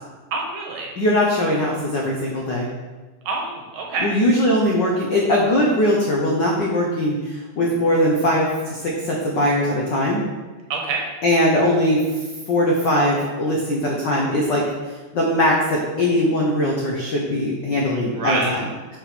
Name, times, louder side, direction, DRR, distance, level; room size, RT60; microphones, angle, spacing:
voice 1, 0.3-0.9 3.3-4.1 10.7-11.0 18.1-18.5, right 3 dB, 65° right, 0 dB, 2.0 m, -26 dB
voice 2, 1.0-2.7 4.0-10.2 11.2-12.0 12.5-14.6 15.1-18.6, left 1 dB, 85° left, -2 dB, 0.9 m, -20 dB
6.4 x 5.8 x 5.0 m, 1.3 s
omnidirectional pair, 3.5 m